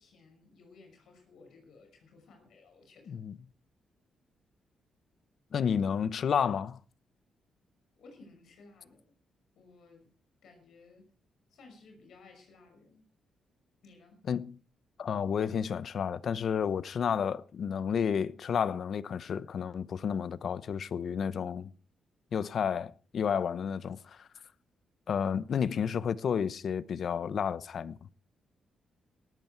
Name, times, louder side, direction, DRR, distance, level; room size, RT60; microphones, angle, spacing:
voice 1, 0.0-3.2 8.0-9.1 9.5-10.1 10.4-11.1 11.5-13.1 13.8-14.2, left 3 dB, 75° left, 5.9 m, -57 dB
voice 2, 5.5-6.8 14.3-14.6 15.0-21.7 22.3-24.3 25.1-28.0, left 7 dB, 55° left, 0.8 m, -31 dB
18.5 x 13.5 x 4.6 m
cardioid pair, 130°, 0 cm